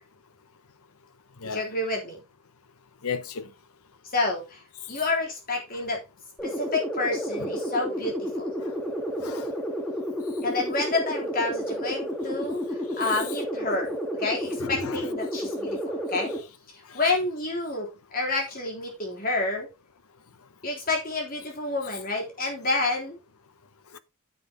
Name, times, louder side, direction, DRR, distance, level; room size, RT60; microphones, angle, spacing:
voice 1, 1.4-2.2 4.1-4.6 4.9-6.0 6.4-8.5 10.4-16.4 16.7-19.7 20.6-23.2, left 3 dB, 40° left, 3.6 m, -29 dB
voice 2, 3.0-3.5 5.7-5.8 8.6-8.7 9.2-9.5 14.6-15.0 16.9-17.0 23.9-24.0, left 6 dB, 90° left, 0.9 m, -35 dB
sound 1, 6.4-16.4, equal, 5° left, 1.9 m, -31 dB
9.7 x 7.7 x 3.5 m
head